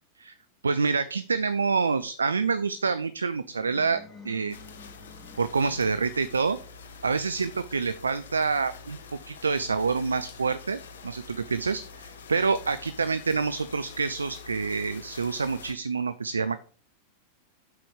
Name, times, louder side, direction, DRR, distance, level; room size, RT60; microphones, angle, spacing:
voice 1, 0.6-4.6 5.4-6.6 7.0-9.0 9.3-16.6, right 4 dB, 75° right, 13 dB, 0.4 m, -27 dB
sound 1, 3.5-6.4, left 4 dB, 15° left, 2.8 m, -50 dB
sound 2, 4.5-15.7, left 4 dB, 60° left, 1.3 m, -46 dB
7.9 x 6.0 x 5.1 m, 0.41 s
figure-of-eight pair, 90°, 0 cm